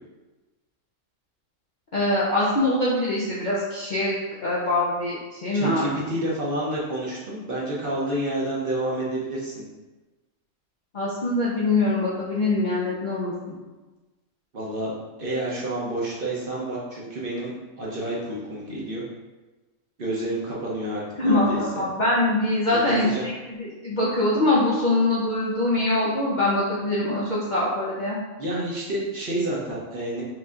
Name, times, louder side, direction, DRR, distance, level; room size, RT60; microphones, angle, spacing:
voice 1, 1.9-5.9 10.9-13.3 21.2-28.2, left 2 dB, 55° left, -7 dB, 0.5 m, -23 dB
voice 2, 5.5-9.6 14.5-14.9 15.2-17.5 17.8-19.0 20.0-21.6 22.7-23.3 28.4-30.2, right 1 dB, 50° right, -5 dB, 0.8 m, -29 dB
4.7 x 2.6 x 2.4 m, 1.2 s
omnidirectional pair, 1.4 m